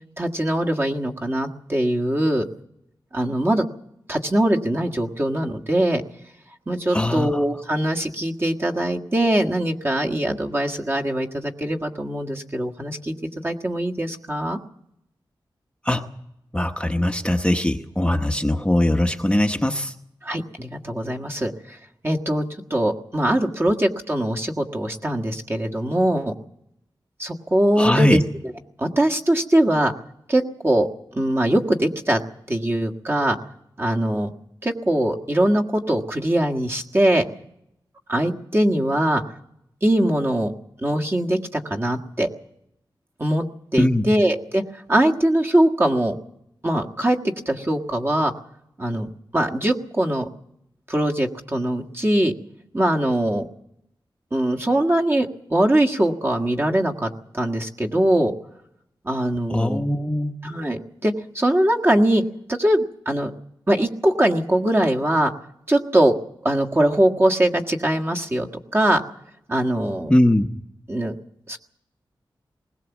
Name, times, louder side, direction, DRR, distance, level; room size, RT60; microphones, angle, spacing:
voice 1, 0.2-2.4 3.1-3.6 4.1-6.0 6.7-13.1 13.4-14.6 20.2-21.8 22.0-22.4 22.7-26.3 27.2-28.2 28.8-29.9 30.3-30.9 31.1-32.2 32.5-33.4 33.8-34.3 34.6-37.2 38.1-39.2 39.8-40.5 40.8-42.3 43.2-43.4 43.7-44.6 44.9-46.2 46.6-47.2 47.4-48.3 48.8-49.1 49.3-50.3 50.9-52.3 52.7-53.5 54.3-58.3 59.0-59.8 60.4-62.2 62.5-63.3 63.7-65.3 65.7-66.2 66.4-69.0 69.5-70.1 70.9-71.1 71.5-71.6, right 1 dB, 25° right, 1 dB, 1.6 m, -22 dB
voice 2, 6.9-7.4 15.8-16.0 16.5-19.9 27.8-28.2 43.8-44.0 59.5-60.4 70.1-70.5, left 1 dB, 10° left, 4 dB, 0.9 m, -20 dB
20.5 x 18.0 x 7.2 m, 0.77 s
wide cardioid pair, 100°, 9 cm